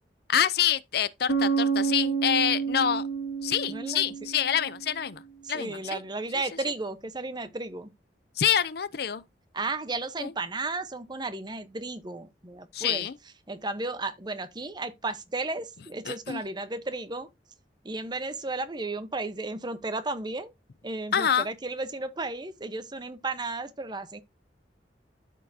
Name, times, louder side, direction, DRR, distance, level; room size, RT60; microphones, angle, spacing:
voice 1, 0.3-3.0 3.4-5.2 5.5-6.0 8.4-9.2 10.2-10.3 12.7-13.1 16.1-16.4 21.1-21.5, left 9 dB, 60° left, 0.5 m, -26 dB
Bass guitar, 1.3-4.9, right 5 dB, 85° left, 1.7 m, -29 dB
voice 2, 3.7-4.0 5.4-7.9 9.5-13.1 13.5-17.3 17.8-20.5 20.8-24.2, right 2 dB, 25° right, 0.9 m, -34 dB
13.0 x 4.5 x 2.7 m
head